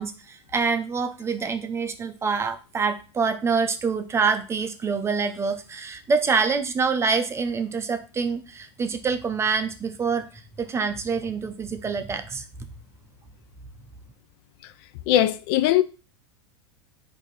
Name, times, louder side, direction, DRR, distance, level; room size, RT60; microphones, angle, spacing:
voice 1, 0.0-12.4, right 5 dB, 20° right, 0.6 m, -26 dB
voice 2, 15.1-15.8, left 13 dB, 55° left, 0.4 m, -20 dB
4.5 x 2.7 x 4.1 m
hypercardioid pair, 105°, 15 cm